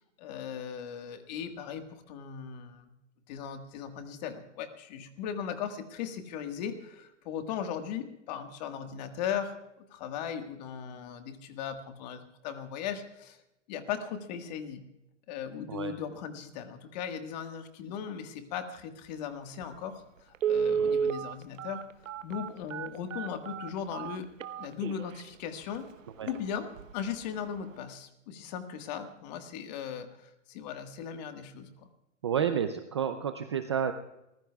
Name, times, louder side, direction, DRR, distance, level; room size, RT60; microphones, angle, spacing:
voice 1, 0.2-2.9 3.3-9.6 9.9-13.4 13.7-14.8 15.3-21.8 22.2-24.3 24.6-25.9 26.2-31.9, left 8 dB, 35° left, 7 dB, 1.6 m, -38 dB
Telephone, 19.6-19.7 20.3-25.2 25.7-25.8 26.2-26.4 26.8-27.1 27.4-27.5, right 7 dB, 85° right, 1.0 m, -31 dB
voice 2, 32.2-33.9, right 8 dB, 25° right, 8 dB, 0.4 m, -30 dB
28.5 x 15.0 x 2.3 m, 0.90 s
hypercardioid pair, 155°, 38 cm